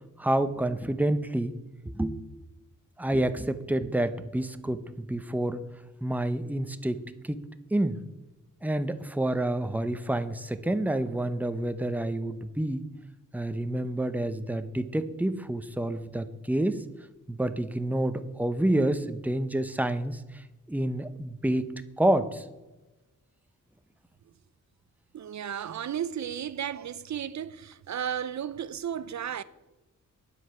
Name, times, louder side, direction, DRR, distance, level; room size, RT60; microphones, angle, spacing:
voice 1, 0.2-1.6 1.9-2.2 3.0-5.6 6.0-7.4 7.7-8.0 8.6-12.8 13.3-16.8 17.3-21.7 22.0-22.5, right 1 dB, 5° right, 0.6 m, -28 dB
voice 2, 25.1-29.4, right 9 dB, 60° right, 0.6 m, -34 dB
10.0 x 7.8 x 5.8 m
wide cardioid pair, 110°, 32 cm